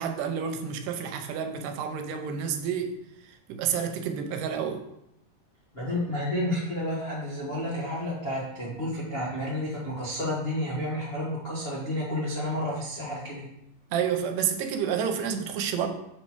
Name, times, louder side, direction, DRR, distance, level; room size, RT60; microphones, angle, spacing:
voice 1, 0.0-2.9 3.5-4.8 13.9-15.9, right 7 dB, 85° right, 6 dB, 2.3 m, -29 dB
voice 2, 5.7-13.5, left 1 dB, 60° left, -6 dB, 0.6 m, -31 dB
7.6 x 4.3 x 4.6 m, 0.81 s
omnidirectional pair, 3.7 m